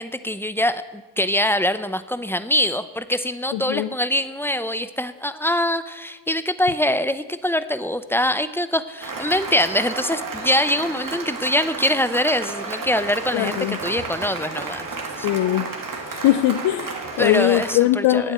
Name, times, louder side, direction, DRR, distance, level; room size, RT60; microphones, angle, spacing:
voice 1, 0.0-14.9 15.2-15.3 16.2-16.3 17.2-18.3, left 1 dB, 5° left, 12 dB, 0.8 m, -23 dB
voice 2, 3.5-3.9 13.3-13.8 15.2-15.7 16.1-18.3, left 14 dB, 85° left, 13 dB, 0.5 m, -21 dB
Cheering / Applause, 9.0-17.8, right 3 dB, 55° right, 2.2 m, -32 dB
9.0 x 8.4 x 8.0 m, 1.2 s
supercardioid pair, 45°, 40 cm